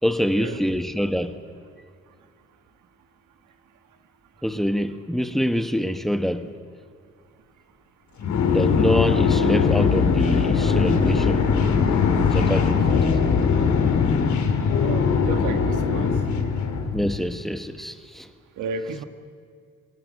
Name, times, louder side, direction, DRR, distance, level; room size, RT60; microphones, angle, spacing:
voice 1, 0.0-1.4 4.4-6.6 8.5-11.5 12.1-13.2 16.9-18.3, equal, ahead, 1.3 m, -25 dB
sound 1, 8.2-17.2, left 6 dB, 70° left, 3.0 m, -21 dB
voice 2, 14.8-16.2 18.6-19.0, right 4 dB, 80° right, 1.6 m, -32 dB
26.5 x 19.0 x 6.6 m
cardioid pair, 90°, 30 cm